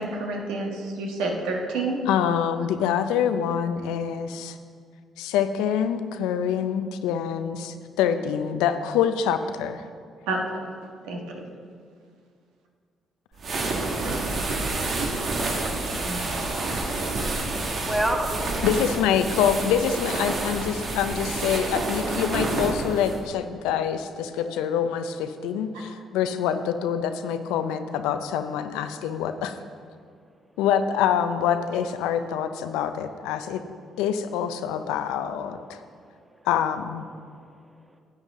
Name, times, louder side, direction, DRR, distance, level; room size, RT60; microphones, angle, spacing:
voice 1, 0.0-2.0 10.3-10.4 11.0-11.4 15.0-15.1 16.1-16.4, right 2 dB, 80° right, 0 dB, 1.4 m, -29 dB
voice 2, 2.1-4.6 5.2-9.8 18.6-29.6 30.6-33.6 34.0-35.8 36.5-37.1, left 8 dB, 80° left, 9 dB, 0.5 m, -25 dB
sound 1, 13.4-23.2, right 2 dB, 55° right, 1.7 m, -28 dB
voice 3, 17.8-18.5 36.1-36.4 37.2-38.0, right 1 dB, 10° right, 3 dB, 1.4 m, -30 dB
10.5 x 8.9 x 3.7 m, 2.1 s
hypercardioid pair, 55°, 0 cm